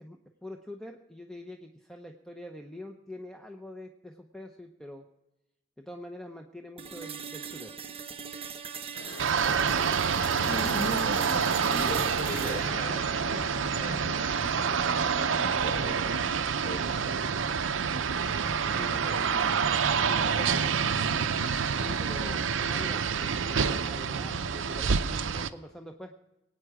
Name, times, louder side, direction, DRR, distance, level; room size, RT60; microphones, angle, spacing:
voice 1, 0.0-5.1 5.8-7.7 18.6-19.0 20.0-20.6 21.8-26.1, left 1 dB, 5° left, 3 dB, 0.7 m, -44 dB
sound 1, 6.8-14.8, right 6 dB, 30° right, 0.8 m, -41 dB
sound 2, 8.9-15.1, left 3 dB, 75° left, 1.1 m, -43 dB
sound 3, 9.2-25.5, right 6 dB, 75° right, 0.6 m, -27 dB
voice 2, 10.4-14.1 15.0-16.3 16.6-17.2 18.6-19.6, equal, 55° left, -6 dB, 5.1 m, -39 dB
22.0 x 9.1 x 4.9 m, 0.99 s
head